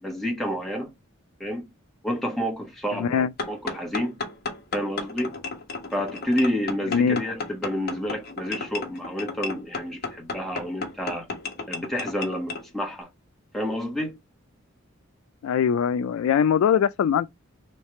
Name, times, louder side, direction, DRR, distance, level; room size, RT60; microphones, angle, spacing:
voice 1, 0.0-0.9 1.4-1.7 2.0-4.1 4.7-5.4 5.9-11.3 11.7-13.1 13.5-14.2, equal, ahead, 1.2 m, -29 dB
voice 2, 2.9-3.3 6.9-7.2 15.4-17.3, left 7 dB, 90° left, 0.3 m, -22 dB
sound 1, 3.4-12.6, left 4 dB, 50° left, 1.2 m, -33 dB
3.2 x 3.2 x 4.2 m
head